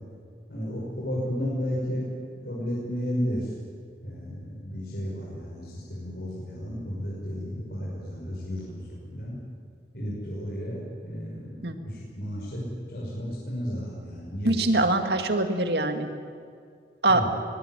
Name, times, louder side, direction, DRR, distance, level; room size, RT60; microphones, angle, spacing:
voice 1, 0.5-2.1 2.4-3.5 4.0-9.3 9.9-14.8 17.1-17.3, equal, 60° left, -5 dB, 5.9 m, -33 dB
voice 2, 14.4-16.1 17.0-17.3, right 2 dB, 65° right, 6 dB, 2.1 m, -23 dB
22.0 x 20.5 x 9.4 m, 2.3 s
head